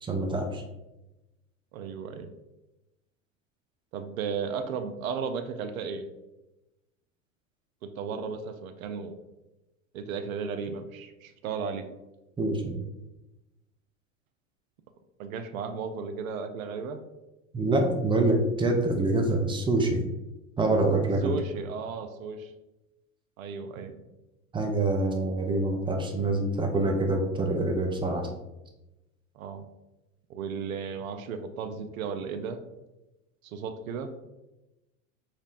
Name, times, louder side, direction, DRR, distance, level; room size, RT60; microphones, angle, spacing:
voice 1, 0.0-0.6 12.4-12.7 17.5-20.0 20.6-21.3 24.5-28.3, right 2 dB, 15° right, 2 dB, 0.4 m, -26 dB
voice 2, 1.7-2.3 3.9-6.1 7.8-9.2 9.9-11.8 15.2-17.0 21.2-22.5 23.4-24.0 29.4-29.6 30.3-32.6 33.4-34.1, right 5 dB, 85° right, 8 dB, 0.5 m, -34 dB
5.6 x 2.1 x 2.4 m, 0.99 s
hypercardioid pair, 90°, 40 cm